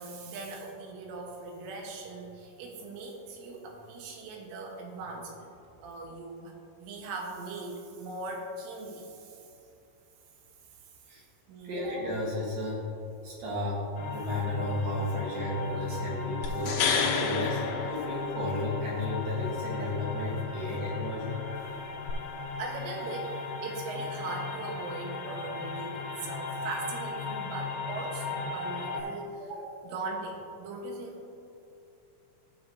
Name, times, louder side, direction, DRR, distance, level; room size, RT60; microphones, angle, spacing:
voice 1, 0.0-5.6 5.8-9.4 11.5-11.8 22.6-23.3 23.6-31.2, right 3 dB, 90° right, 1 dB, 3.6 m, -40 dB
voice 2, 11.6-12.8 13.2-13.8 14.1-21.3, left 1 dB, 65° right, -4 dB, 2.3 m, -33 dB
sound 1, 14.0-29.0, left 5 dB, 70° left, 2.7 m, -37 dB
sound 2, 16.4-18.7 22.1-22.2, left 6 dB, 85° left, 3.5 m, -30 dB
14.5 x 7.1 x 2.6 m, 2.7 s
omnidirectional pair, 5.5 m